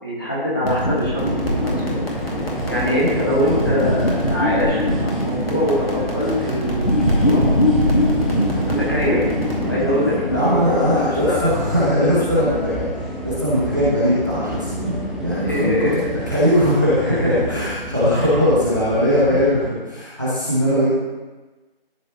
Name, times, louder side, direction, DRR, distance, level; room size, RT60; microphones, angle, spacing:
voice 1, 0.0-2.2 2.7-7.4 8.9-9.3 9.6-11.6 12.0-12.6 15.4-16.1 17.0-17.4 18.1-18.3 19.3-19.4, left 1 dB, 20° left, -8 dB, 1.6 m, -23 dB
sound 1, 0.6-9.7, left 1 dB, 80° left, 2.5 m, -22 dB
sound 2, 1.1-19.7, equal, ahead, 0.5 m, -29 dB
voice 2, 10.3-12.8 13.2-15.9 16.3-20.9, equal, 20° right, -9 dB, 1.1 m, -20 dB
12.5 x 4.3 x 3.1 m, 1.2 s
figure-of-eight pair, 175°, 30 cm